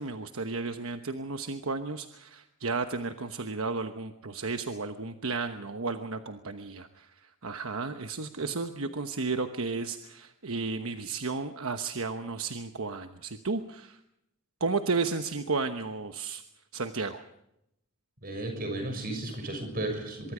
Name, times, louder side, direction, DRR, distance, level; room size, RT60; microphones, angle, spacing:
voice 1, 0.0-7.1 7.4-14.0 14.6-16.4 16.7-17.2, right 4 dB, 70° right, 7 dB, 1.1 m, -33 dB
voice 2, 18.2-20.3, right 1 dB, 40° right, 6 dB, 6.5 m, -34 dB
23.5 x 23.5 x 5.0 m, 0.81 s
head